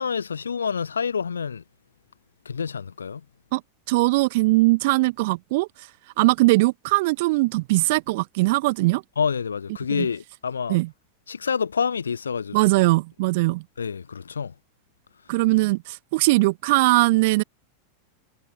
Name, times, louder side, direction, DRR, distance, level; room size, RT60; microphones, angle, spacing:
voice 1, 0.0-1.6 2.4-3.2 9.2-10.8 11.3-12.6 13.8-14.5, left 6 dB, 70° left, 1.3 m, -27 dB
voice 2, 3.9-5.9 6.2-9.0 9.9-10.1 10.7-10.9 12.5-13.6 15.3-17.4, right 22 dB, 50° right, 0.5 m, -20 dB
figure-of-eight pair, 90°, 0 cm